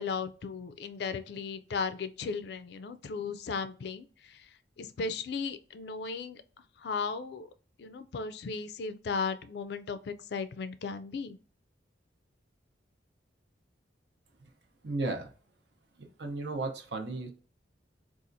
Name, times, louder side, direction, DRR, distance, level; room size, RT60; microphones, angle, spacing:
voice 1, 0.0-4.5 4.8-6.4 6.8-7.5 7.8-11.4, left 5 dB, 60° left, 12 dB, 0.3 m, -36 dB
voice 2, 14.8-15.3 16.2-17.3, right 2 dB, 65° right, 4 dB, 0.7 m, -34 dB
4.1 x 2.4 x 2.5 m, 0.39 s
head